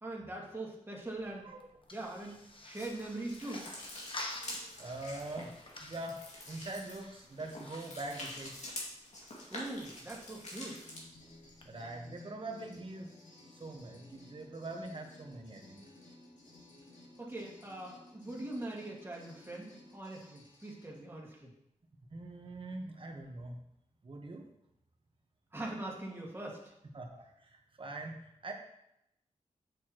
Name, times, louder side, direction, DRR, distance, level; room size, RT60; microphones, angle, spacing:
voice 1, 0.0-1.5 1.9-2.4 2.6-3.7 9.5-10.9 17.2-21.5 25.5-26.7, right 2 dB, 15° right, -3 dB, 2.1 m, -42 dB
sound 1, 1.0-11.9, left 2 dB, 40° left, 1.2 m, -51 dB
sound 2, 2.7-11.0, left 1 dB, 65° left, 2.4 m, -46 dB
voice 2, 4.4-8.7 11.6-13.1 13.4-15.8 22.1-23.6 24.0-24.5 26.9-28.5, right 2 dB, 40° right, 2 dB, 1.3 m, -43 dB
sound 3, 10.7-21.0, left 2 dB, 80° left, 2.1 m, -57 dB
8.2 x 6.6 x 3.1 m, 0.81 s
cardioid pair, 70°, 13 cm